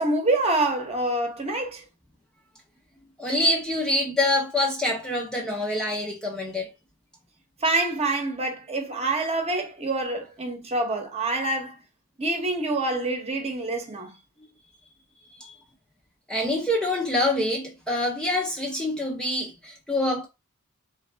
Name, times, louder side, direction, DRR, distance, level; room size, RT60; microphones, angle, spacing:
voice 1, 0.0-1.8 7.6-11.8 12.2-14.1, right 2 dB, 30° right, 1.0 m, -26 dB
voice 2, 3.2-6.7 15.4-15.5 16.3-20.3, left 1 dB, 5° left, 0.6 m, -26 dB
3.7 x 3.2 x 3.3 m
head